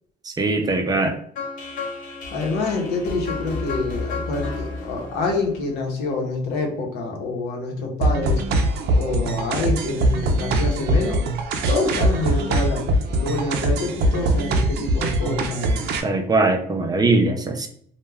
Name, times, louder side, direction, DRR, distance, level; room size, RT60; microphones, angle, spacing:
voice 1, 0.2-1.2 16.0-17.7, right 3 dB, 25° right, 4 dB, 0.5 m, -21 dB
sound 1, 1.3-6.3, left 4 dB, 50° left, 0.8 m, -32 dB
voice 2, 2.3-8.4 9.0-11.2 11.7-15.9, left 3 dB, 85° left, 2 dB, 0.8 m, -26 dB
sound 2, 8.0-16.0, right 1 dB, 75° right, 0.5 m, -22 dB
2.2 x 2.2 x 3.3 m, 0.62 s
cardioid pair, 110°, 17 cm